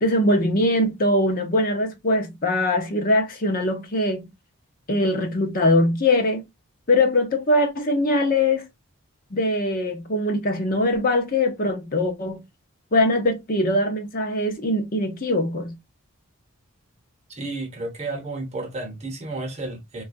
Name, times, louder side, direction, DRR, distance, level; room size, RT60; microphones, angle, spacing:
voice 1, 0.0-4.3 4.9-6.4 6.9-8.7 9.3-12.4 12.9-15.8, left 1 dB, 40° left, 0.6 m, -22 dB
voice 2, 17.3-20.0, right 2 dB, 30° right, 0.9 m, -32 dB
3.8 x 2.3 x 2.5 m
head